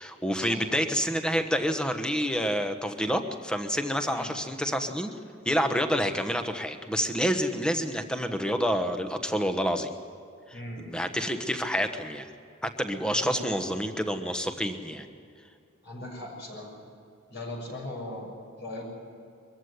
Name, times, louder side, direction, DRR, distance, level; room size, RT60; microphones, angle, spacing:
voice 1, 0.0-5.1 5.4-9.9 10.5-12.3 12.6-15.1, equal, 5° left, 7 dB, 1.2 m, -28 dB
voice 2, 10.5-11.0 13.1-13.6 15.8-16.7 17.3-19.0, left 1 dB, 55° left, -1 dB, 6.4 m, -39 dB
23.0 x 14.5 x 9.6 m, 2.5 s
head